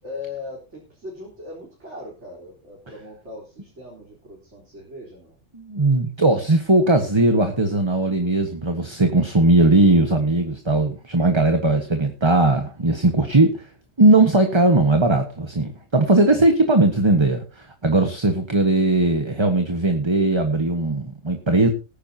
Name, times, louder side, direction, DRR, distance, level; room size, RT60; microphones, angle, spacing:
voice 1, 0.0-5.4, left 3 dB, 70° right, -3 dB, 4.2 m, -39 dB
voice 2, 5.5-13.7 14.0-21.7, right 2 dB, 25° right, 6 dB, 1.5 m, -19 dB
19.0 x 10.0 x 2.8 m, 0.30 s
omnidirectional pair, 1.2 m